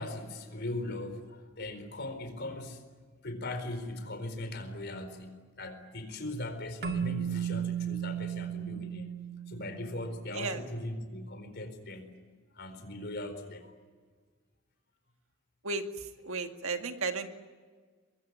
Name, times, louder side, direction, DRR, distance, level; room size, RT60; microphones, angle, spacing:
voice 1, 0.0-2.8 3.2-9.2 9.5-12.2 12.6-13.7, left 1 dB, 55° left, 8 dB, 4.4 m, -39 dB
Keyboard (musical), 6.8-10.1, right 9 dB, 50° right, 2.1 m, -35 dB
voice 2, 15.6-17.3, right 4 dB, 75° right, 6 dB, 2.1 m, -34 dB
24.0 x 22.5 x 9.6 m, 1.5 s
head